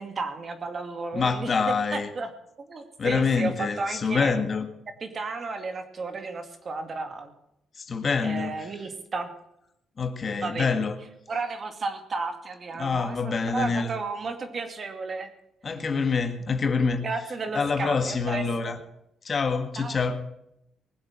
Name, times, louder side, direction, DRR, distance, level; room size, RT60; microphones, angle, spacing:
voice 1, 0.0-2.3 2.6-4.3 5.0-7.3 8.2-9.3 10.4-10.7 11.3-15.3 17.0-18.7 19.8-20.0, right 4 dB, 45° right, 7 dB, 2.2 m, -33 dB
voice 2, 1.1-2.1 3.0-4.7 7.8-8.5 10.0-10.9 12.8-13.9 15.6-17.0 17.5-18.8 19.2-20.2, left 5 dB, 40° left, 8 dB, 1.7 m, -26 dB
20.0 x 7.8 x 7.4 m, 0.81 s
cardioid pair, 90°, 0 cm